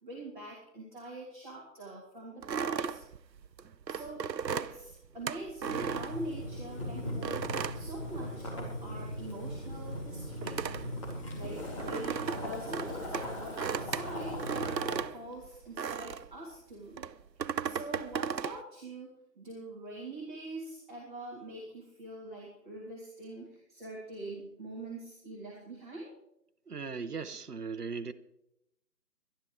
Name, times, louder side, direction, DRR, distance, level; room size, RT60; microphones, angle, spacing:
voice 1, 0.0-3.0 3.9-10.6 11.0-14.4 14.8-17.2 17.6-26.1, right 2 dB, 30° right, -6 dB, 3.0 m, -44 dB
sound 1, 2.4-6.7 7.2-8.7 9.0-16.4 16.9-18.6, right 7 dB, 85° right, 0.7 m, -36 dB
Boiling, 5.6-15.0, left 1 dB, 20° left, 2.7 m, -39 dB
voice 2, 26.7-28.1, right 5 dB, 65° right, 11 dB, 1.1 m, -38 dB
23.0 x 11.5 x 3.3 m, 0.80 s
figure-of-eight pair, 165°, 49 cm